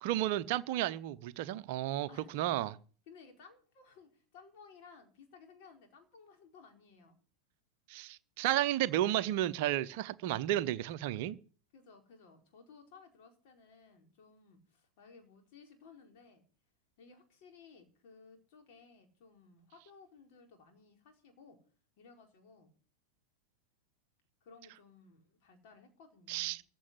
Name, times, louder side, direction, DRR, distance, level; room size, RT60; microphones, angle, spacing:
voice 1, 0.0-2.7 7.9-11.4 26.3-26.6, right 13 dB, 50° right, 0.7 m, -32 dB
voice 2, 2.1-2.6 3.1-7.2 11.7-16.4 17.0-21.6 22.0-22.7 24.4-26.6, left 5 dB, 45° left, 4.7 m, -58 dB
15.0 x 6.3 x 9.7 m
figure-of-eight pair, 90°, 0 cm